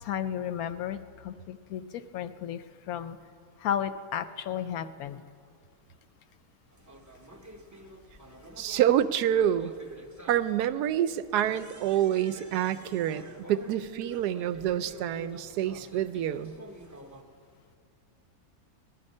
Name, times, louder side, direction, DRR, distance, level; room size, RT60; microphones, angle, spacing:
voice 1, 0.0-3.2 3.6-5.2, left 9 dB, 75° left, 12 dB, 1.0 m, -33 dB
sound 1, 6.7-17.2, right 1 dB, 20° right, 0.5 m, -49 dB
voice 2, 8.6-9.7 10.3-13.2 13.5-16.5, right 11 dB, 80° right, 13 dB, 1.1 m, -27 dB
18.0 x 11.0 x 5.4 m, 2.2 s
omnidirectional pair, 1.7 m